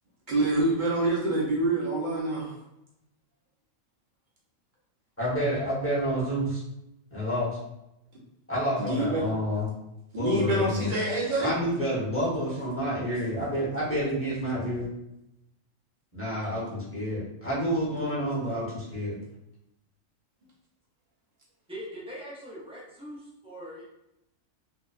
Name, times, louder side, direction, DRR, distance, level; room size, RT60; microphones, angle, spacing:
voice 1, 0.3-2.6 8.8-9.3 10.1-11.5, right 2 dB, 50° right, -4 dB, 0.6 m, -26 dB
voice 2, 5.2-6.6 7.1-7.5 8.5-9.7 10.2-10.9 11.4-14.9 16.1-19.2, equal, 10° left, -8 dB, 0.8 m, -29 dB
voice 3, 21.7-23.8, equal, 10° right, -6 dB, 0.3 m, -41 dB
2.7 x 2.1 x 2.4 m, 0.86 s
omnidirectional pair, 1.4 m